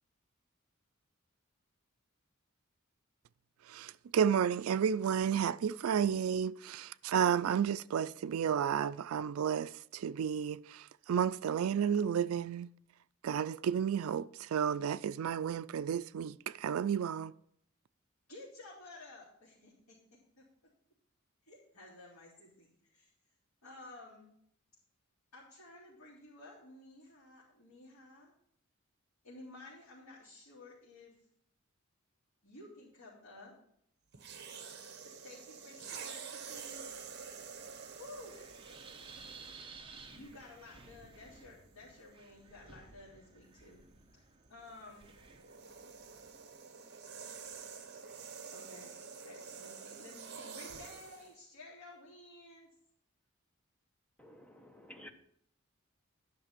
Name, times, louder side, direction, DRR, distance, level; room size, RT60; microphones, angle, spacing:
voice 1, 3.7-12.7 13.2-17.3, right 8 dB, 75° right, 0.3 m, -32 dB
voice 2, 18.3-20.4 21.5-23.1 23.6-24.3 25.3-28.3 29.2-31.1 32.4-33.5 34.7-35.0 35.2-36.8 38.0-38.6 40.1-43.8 44.1-44.2 44.5-45.1 48.5-48.9 49.2-52.7, left 2 dB, 75° left, 3.6 m, -53 dB
sound 1, 34.1-39.7 40.5-40.7 44.6-51.3, right 6 dB, 55° right, 1.1 m, -48 dB
Wind, 36.4-46.5, right 4 dB, 25° right, 0.9 m, -56 dB
voice 3, 54.2-55.1, equal, 5° left, 0.9 m, -53 dB
10.5 x 5.9 x 6.0 m
head